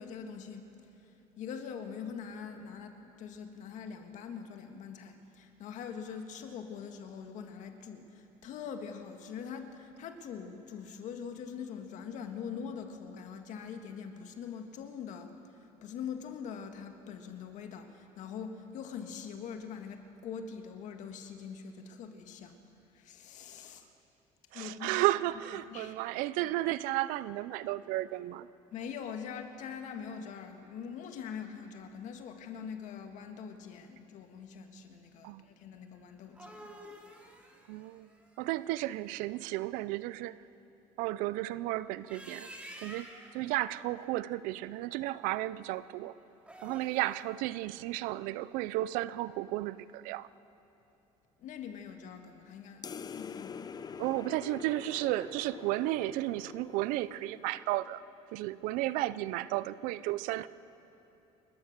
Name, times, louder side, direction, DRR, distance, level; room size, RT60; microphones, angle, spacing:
voice 1, 0.0-22.6 22.9-23.9 24.5-25.1 25.7-25.9 28.7-36.7 51.4-53.6 53.9-54.2, left 7 dB, 65° left, 5 dB, 1.9 m, -43 dB
voice 2, 24.5-28.5 35.2-35.4 37.7-38.1 38.4-40.4 41.0-42.5 42.8-43.1 43.3-46.2 46.6-50.3 54.0-58.0 58.3-60.5, right 16 dB, 85° right, 17 dB, 0.6 m, -33 dB
sound 1, 36.1-39.2 41.9-43.4 46.3-47.2, equal, 10° right, 2.9 m, -50 dB
sound 2, 52.8-57.7, left 6 dB, 30° left, 0.7 m, -45 dB
29.5 x 13.5 x 6.7 m, 2.8 s
cardioid pair, 115°, 14 cm